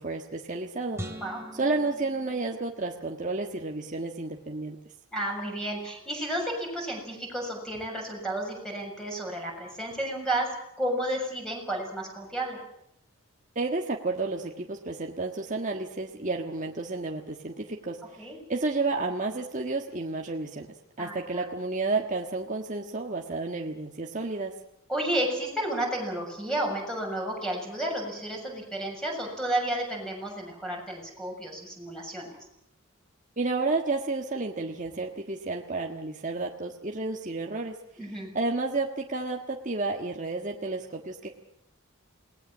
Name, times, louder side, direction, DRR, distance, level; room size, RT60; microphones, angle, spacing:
voice 1, 0.0-1.0 1.5-4.8 13.5-20.7 21.0-24.5 33.4-37.8 38.3-41.3, right 3 dB, 35° right, 1 dB, 1.6 m, -31 dB
sound 1, 0.9-3.3, equal, 15° right, 2.9 m, -42 dB
voice 2, 5.1-10.5 10.8-12.6 18.2-18.4 21.0-21.5 24.9-32.4 38.0-38.3, right 1 dB, 5° left, 0 dB, 7.0 m, -32 dB
28.0 x 19.5 x 7.4 m, 0.75 s
head